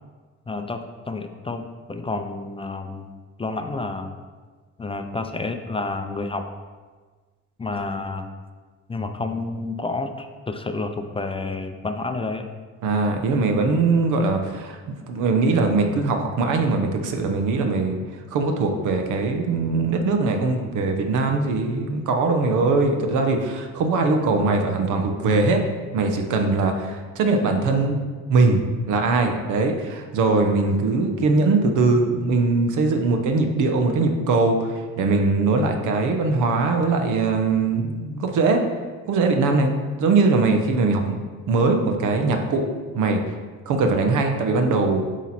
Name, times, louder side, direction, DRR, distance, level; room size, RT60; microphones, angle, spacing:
voice 1, 0.5-3.1 3.4-4.1 4.8-6.5 7.6-8.3 8.9-12.5, left 3 dB, 20° left, 6 dB, 0.4 m, -29 dB
voice 2, 12.8-14.8 15.1-18.0 18.3-25.6 25.9-28.0 28.3-38.6 39.1-39.7 40.0-41.2 41.5-42.6 42.9-43.2 43.7-45.0, right 3 dB, 80° right, 4 dB, 0.8 m, -21 dB
8.0 x 3.1 x 4.2 m, 1.5 s
cardioid pair, 90°, 30 cm